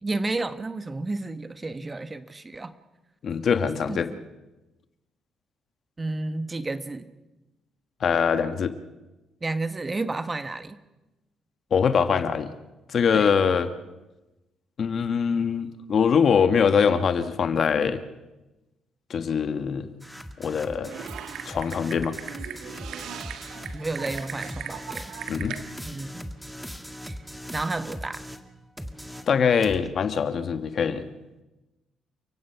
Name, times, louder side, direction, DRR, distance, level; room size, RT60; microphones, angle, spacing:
voice 1, 0.0-2.7 3.9-4.2 6.0-7.1 9.4-10.8 13.1-13.3 23.7-25.1 25.8-26.3 27.0-27.2 27.5-28.2, right 2 dB, 25° right, 11 dB, 1.3 m, -31 dB
voice 2, 3.2-4.1 8.0-8.7 11.7-12.5 12.9-13.7 14.8-18.0 19.1-19.9 20.4-20.9 21.5-22.1 25.3-25.6 29.3-31.1, left 6 dB, 55° left, 10 dB, 1.5 m, -23 dB
sound 1, 20.0-28.5 28.8-29.9, equal, ahead, 1.9 m, -40 dB
Typing, 20.8-25.6, right 8 dB, 75° right, 1.6 m, -38 dB
29.5 x 16.0 x 5.9 m, 1.1 s
supercardioid pair, 75°, 0 cm